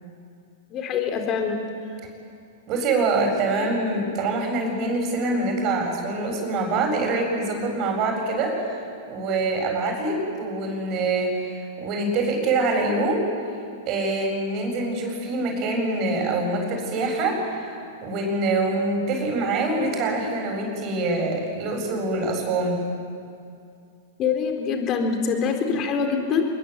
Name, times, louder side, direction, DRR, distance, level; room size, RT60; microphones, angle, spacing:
voice 1, 0.7-1.6 3.6-3.7 24.2-26.4, left 6 dB, 35° left, 4 dB, 4.2 m, -24 dB
voice 2, 2.7-13.3 13.9-22.8, right 2 dB, 40° right, 2 dB, 7.7 m, -25 dB
27.0 x 22.0 x 8.3 m, 2.5 s
figure-of-eight pair, 100°, 0 cm